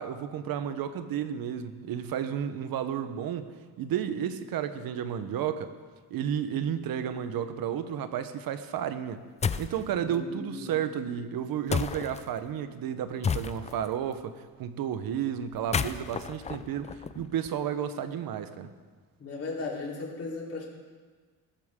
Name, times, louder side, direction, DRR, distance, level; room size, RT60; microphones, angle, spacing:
voice 1, 0.0-3.5 3.8-5.7 6.1-9.2 9.6-18.7, right 9 dB, 60° right, 10 dB, 1.0 m, -32 dB
sound 1, 9.4-9.8 11.7-12.2 13.2-13.9 15.5-17.5, left 6 dB, 20° left, 0.3 m, -31 dB
voice 2, 10.0-10.7 19.2-20.7, left 3 dB, 35° left, -4 dB, 4.0 m, -36 dB
19.0 x 12.5 x 3.7 m, 1.5 s
cardioid pair, 140°, 39 cm